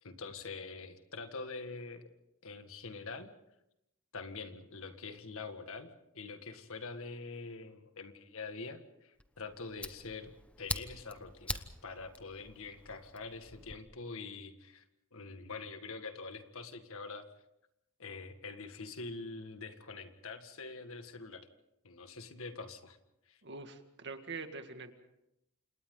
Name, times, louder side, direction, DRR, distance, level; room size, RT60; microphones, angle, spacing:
voice 1, 0.0-2.1 2.4-3.3 4.1-5.9 6.1-14.8 15.1-17.3 18.0-21.5 21.8-23.0 23.3-23.4, left 4 dB, 65° left, 8 dB, 1.9 m, -45 dB
Fire, 9.2-13.8, left 1 dB, 5° left, 1.0 m, -44 dB
voice 2, 23.4-24.9, right 4 dB, 55° right, 7 dB, 2.0 m, -44 dB
30.0 x 27.5 x 3.9 m, 0.85 s
head